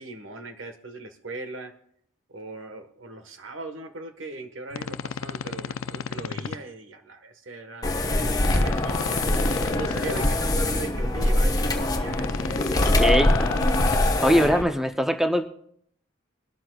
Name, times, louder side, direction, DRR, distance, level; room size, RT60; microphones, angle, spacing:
voice 1, 0.0-1.7 2.3-9.2 9.7-12.3 12.8-13.4, right 3 dB, 75° right, 6 dB, 1.3 m, -39 dB
sound 1, 4.7-6.6 8.4-10.3 12.1-14.0, left 6 dB, 90° left, 0.5 m, -33 dB
sound 2, 7.8-14.6, left 1 dB, 20° left, 1.1 m, -23 dB
voice 2, 12.9-13.5 14.2-15.5, equal, ahead, 6 dB, 0.5 m, -22 dB
23.5 x 12.5 x 2.3 m, 0.67 s
head